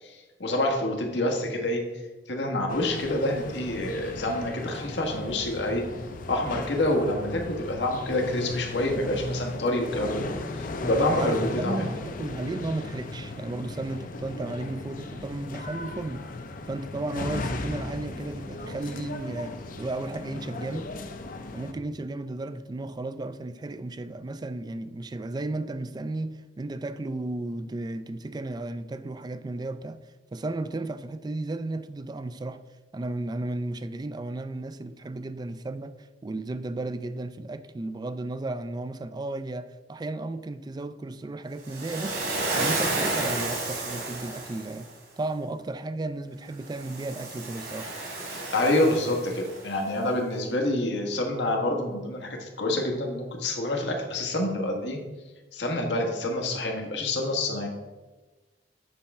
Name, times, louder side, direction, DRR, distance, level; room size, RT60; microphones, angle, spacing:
voice 1, 0.0-1.8 2.3-5.8 6.3-11.4 11.6-11.8 48.5-55.0 55.5-57.7, left 1 dB, 90° left, 1.4 m, -27 dB
sound 1, 2.7-21.7, left 2 dB, 50° left, 0.6 m, -36 dB
voice 2, 10.8-16.3 16.7-20.9 21.5-30.0 30.3-32.6 32.9-36.0 36.2-42.2 42.6-44.9 45.2-48.0, right 2 dB, 25° right, 0.3 m, -34 dB
Waves surf, 41.6-44.9 46.6-49.7, right 2 dB, 65° right, 2.3 m, -31 dB
8.5 x 3.5 x 5.4 m
head